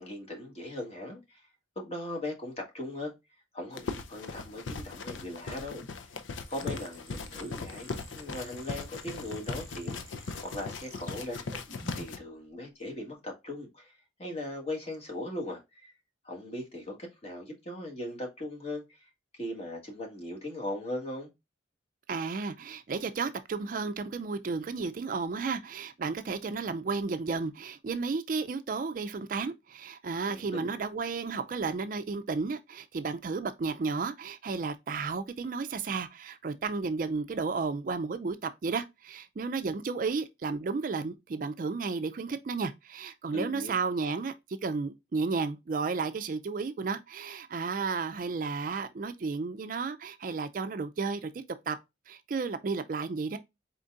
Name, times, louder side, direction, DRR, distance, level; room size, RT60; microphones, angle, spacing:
voice 1, 0.0-1.5 1.7-3.1 3.5-5.8 6.5-11.5 11.9-15.9 16.2-21.3 30.3-30.7 43.3-43.7, left 1 dB, 35° left, 1.4 m, -39 dB
sound 1, 3.7-12.2, left 4 dB, 90° left, 0.5 m, -39 dB
sound 2, 6.4-12.3, right 2 dB, 15° right, 0.8 m, -52 dB
voice 2, 22.1-51.3 51.7-51.8 52.1-53.4, right 4 dB, 45° right, 0.4 m, -33 dB
4.3 x 3.9 x 2.4 m
head